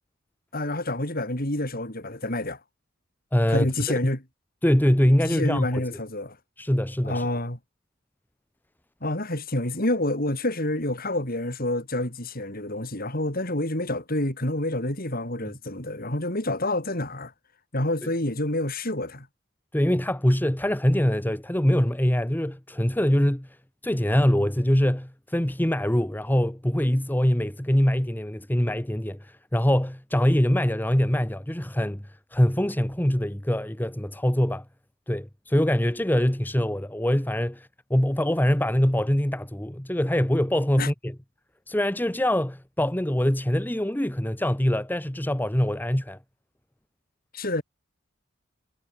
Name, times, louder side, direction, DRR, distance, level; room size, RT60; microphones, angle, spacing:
voice 1, 0.5-2.6 3.5-4.2 5.2-6.4 7.0-7.6 9.0-17.3 17.7-19.3 40.8-40.9 47.3-47.6, left 1 dB, 45° left, 6.2 m, -28 dB
voice 2, 3.3-3.7 4.6-5.8 6.6-7.3 15.4-15.5 19.7-23.5 23.8-32.0 32.3-34.6 35.1-41.1 41.7-46.2, equal, 10° left, 1.1 m, -23 dB
head